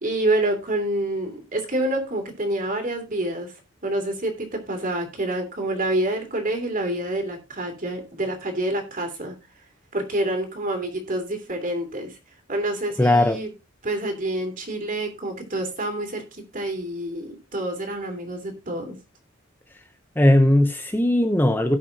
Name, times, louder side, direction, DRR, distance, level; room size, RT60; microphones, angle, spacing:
voice 1, 0.0-3.5 3.8-9.4 9.9-12.2 12.5-13.5 13.8-19.0, right 1 dB, 40° right, 3.0 m, -27 dB
voice 2, 13.0-13.4 20.2-21.8, left 1 dB, 10° left, 0.7 m, -18 dB
18.0 x 6.0 x 2.8 m
head